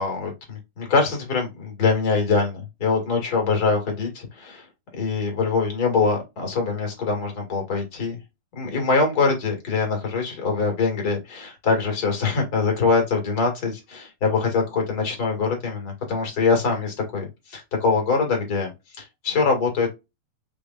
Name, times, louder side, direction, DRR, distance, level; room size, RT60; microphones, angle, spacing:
voice 1, 0.0-4.6 5.0-8.2 8.6-18.7 19.0-19.9, left 4 dB, 35° left, 1.7 m, -23 dB
5.2 x 3.3 x 2.4 m
omnidirectional pair, 4.1 m